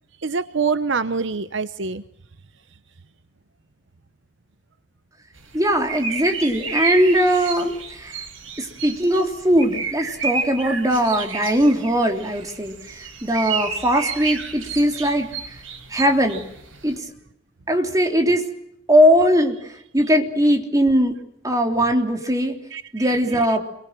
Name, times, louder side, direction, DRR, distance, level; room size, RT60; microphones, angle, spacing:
voice 1, 0.2-2.0 22.7-23.5, right 5 dB, 65° right, 12 dB, 0.9 m, -25 dB
sound 1, 5.4-17.0, right 5 dB, 85° right, 5.8 m, -31 dB
voice 2, 5.5-8.2 8.6-15.3 15.9-16.4 16.8-17.0 17.7-18.4 18.9-19.7 19.9-21.2 21.4-22.6 22.9-23.6, equal, 20° right, 4 dB, 3.4 m, -20 dB
27.0 x 24.0 x 7.6 m, 0.77 s
head